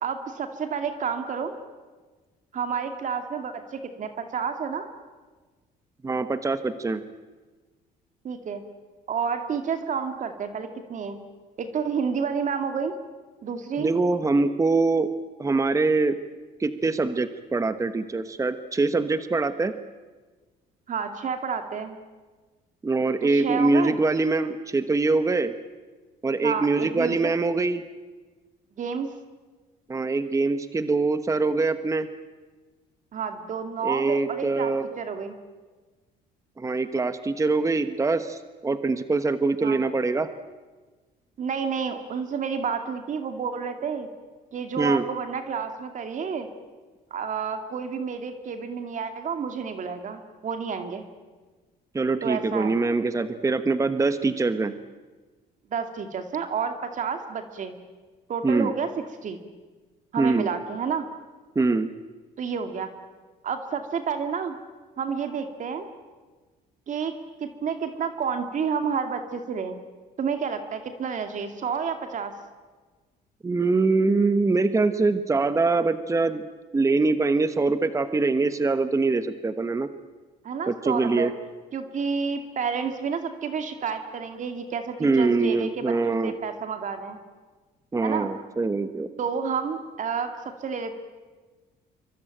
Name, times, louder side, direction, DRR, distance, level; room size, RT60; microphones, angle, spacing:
voice 1, 0.0-1.5 2.5-4.9 8.2-8.6 9.1-11.2 11.6-13.0 13.4-13.9 20.9-22.0 23.2-24.0 26.4-27.3 28.8-29.1 33.1-35.3 39.6-39.8 41.4-44.1 44.5-46.5 47.1-51.0 52.2-52.8 55.7-57.8 58.3-58.9 59.2-59.4 60.1-61.1 62.4-62.9 63.4-64.6 65.0-65.9 66.9-67.1 67.4-69.8 70.2-72.3 80.4-81.3 81.7-87.2 88.0-88.3 89.2-91.0, right 6 dB, 50° right, 7 dB, 2.4 m, -30 dB
voice 2, 6.0-7.0 13.8-15.1 15.4-16.2 16.6-19.7 22.8-25.5 26.2-27.8 29.9-32.1 33.8-34.8 36.6-40.3 44.8-45.0 51.9-54.7 58.4-58.7 60.2-60.5 61.5-61.9 73.4-76.4 76.7-79.9 80.7-81.3 85.0-86.4 87.9-89.1, right 3 dB, 20° right, 11 dB, 1.2 m, -23 dB
27.0 x 24.0 x 9.1 m, 1.3 s
cardioid pair, 110°, 17 cm